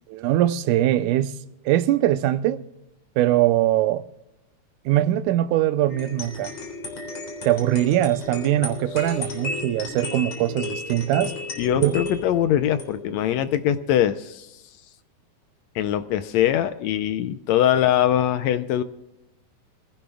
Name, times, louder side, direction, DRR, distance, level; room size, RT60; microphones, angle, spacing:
voice 1, 0.1-1.4 1.7-2.6 3.2-4.0 4.9-6.5 7.5-11.3 11.8-12.0, right 13 dB, 85° right, 2.2 m, -21 dB
sound 1, 5.9-14.2, left 3 dB, 60° left, 5.0 m, -34 dB
voice 2, 11.6-14.5 15.7-18.8, left 11 dB, 75° left, 1.8 m, -22 dB
27.0 x 16.0 x 2.3 m
omnidirectional pair, 3.5 m